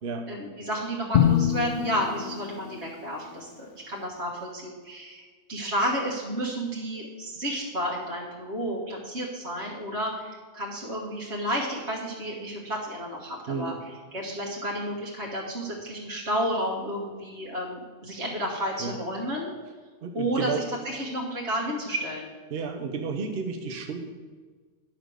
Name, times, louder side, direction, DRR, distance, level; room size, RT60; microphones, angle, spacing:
voice 1, 0.3-5.2 5.5-19.5 20.1-22.3, equal, 85° right, -4 dB, 1.9 m, -31 dB
Drum, 1.1-3.2, left 9 dB, 60° left, 0.6 m, -25 dB
voice 2, 13.5-13.8 18.8-18.9 20.0-20.6 22.5-24.1, right 5 dB, 65° right, 4 dB, 1.1 m, -32 dB
10.5 x 5.2 x 6.3 m, 1.4 s
omnidirectional pair, 1.1 m